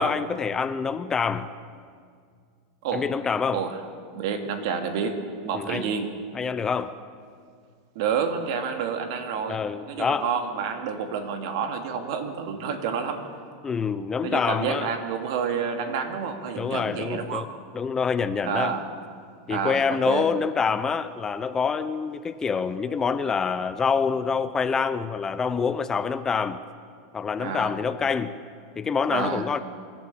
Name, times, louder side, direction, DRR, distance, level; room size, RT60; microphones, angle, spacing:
voice 1, 0.0-1.5 2.9-3.6 5.5-5.9 6.3-6.9 9.5-10.3 13.6-14.9 16.5-17.5 17.7-18.7 19.5-26.6 27.1-28.3 28.8-29.6, left 5 dB, 20° left, 12 dB, 0.8 m, -26 dB
voice 2, 4.1-6.1 7.9-9.6 9.9-13.2 14.2-17.4 18.4-18.9 19.5-20.3 27.4-27.7 29.1-29.5, right 6 dB, 65° right, 5 dB, 2.5 m, -29 dB
26.0 x 12.0 x 8.6 m, 2.1 s
supercardioid pair, 125°, 3 cm